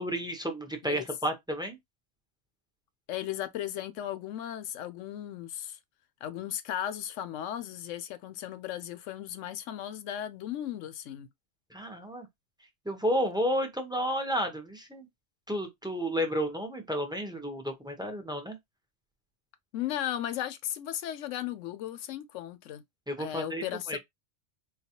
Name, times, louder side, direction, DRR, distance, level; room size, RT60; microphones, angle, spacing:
voice 1, 0.0-1.8 11.7-12.3 12.9-15.1 15.5-18.6 23.1-24.0, equal, 5° right, 0.3 m, -31 dB
voice 2, 3.1-5.8 6.2-11.3 19.7-22.8 23.2-24.0, left 11 dB, 90° left, 0.9 m, -36 dB
4.0 x 2.3 x 2.8 m
omnidirectional pair, 1.2 m